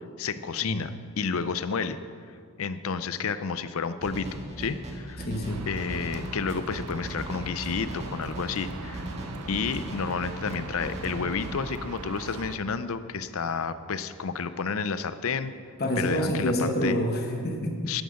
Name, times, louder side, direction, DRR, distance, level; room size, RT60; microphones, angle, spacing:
voice 1, 0.2-2.0 2.6-5.2 5.7-9.1 9.5-15.5 16.0-17.0 17.9-18.0, left 5 dB, 65° left, 13 dB, 0.5 m, -31 dB
sound 1, 4.0-11.5, right 1 dB, 30° right, 1.9 m, -38 dB
voice 2, 5.2-5.6 15.8-17.9, equal, 45° left, 3 dB, 1.1 m, -27 dB
sound 2, 5.5-12.6, right 3 dB, 85° right, 0.8 m, -41 dB
11.0 x 9.4 x 6.4 m, 2.3 s
head